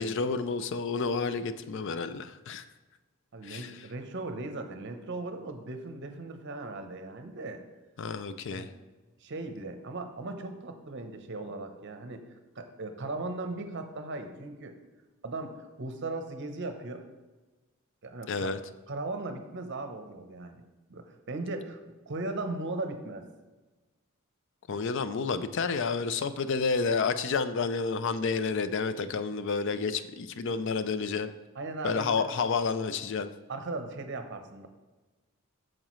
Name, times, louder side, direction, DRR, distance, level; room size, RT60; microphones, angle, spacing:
voice 1, 0.0-2.6 3.4-3.7 8.0-8.7 18.3-18.6 24.7-31.3 31.8-33.3, left 4 dB, 60° left, 12 dB, 0.4 m, -30 dB
voice 2, 3.3-7.6 8.5-8.7 9.2-12.2 12.6-14.8 15.2-17.1 18.0-18.5 18.9-20.6 20.9-21.8 22.1-23.3 31.5-32.3 33.5-34.7, right 2 dB, 55° right, 7 dB, 0.8 m, -37 dB
8.6 x 6.4 x 3.1 m, 1.2 s
head